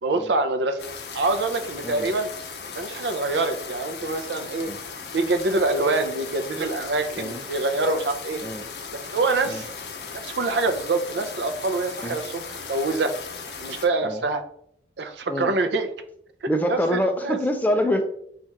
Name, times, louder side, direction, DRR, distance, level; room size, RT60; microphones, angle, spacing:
voice 1, 0.0-0.9 1.1-2.3 2.7-4.7 5.1-8.4 8.9-9.7 10.1-13.1 13.6-14.4 15.0-15.9 16.4-17.4, right 3 dB, 80° right, 8 dB, 0.5 m, -25 dB
sound 1, 0.8-13.9, left 5 dB, 70° left, 0.6 m, -37 dB
voice 2, 16.5-18.0, equal, 10° left, 5 dB, 0.4 m, -25 dB
4.2 x 2.4 x 4.5 m, 0.69 s
head